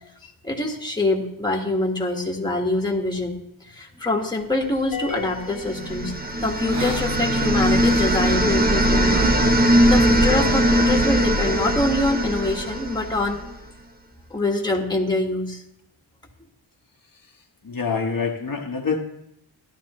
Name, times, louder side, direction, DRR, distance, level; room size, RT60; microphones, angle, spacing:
voice 1, 0.2-9.2 9.8-13.4 14.3-15.6, left 2 dB, 10° left, 0 dB, 1.6 m, -25 dB
sound 1, 4.5-10.7, left 1 dB, 85° right, 1.6 m, -35 dB
sound 2, 4.9-6.6, left 5 dB, 85° left, 1.7 m, -35 dB
sound 3, 5.6-13.5, right 1 dB, 20° right, 0.8 m, -20 dB
voice 2, 17.6-19.0, left 5 dB, 45° left, 0 dB, 1.2 m, -25 dB
13.5 x 11.0 x 3.1 m, 0.78 s
wide cardioid pair, 110°, 48 cm